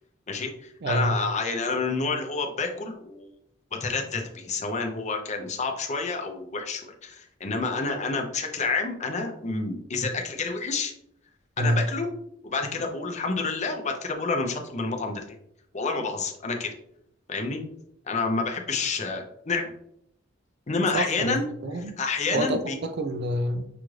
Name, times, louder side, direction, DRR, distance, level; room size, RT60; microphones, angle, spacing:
voice 1, 0.3-3.3 3.7-10.9 11.6-12.1 12.4-15.2 15.7-16.7 17.3-17.6 18.1-19.7 20.7-21.4 22.0-22.8, left 4 dB, 35° left, 3 dB, 0.6 m, -29 dB
voice 2, 0.8-1.1 11.6-11.8 20.9-21.4 21.6-21.9 22.3-23.7, right 1 dB, 60° right, 7 dB, 0.5 m, -27 dB
5.8 x 2.5 x 3.1 m, 0.74 s
head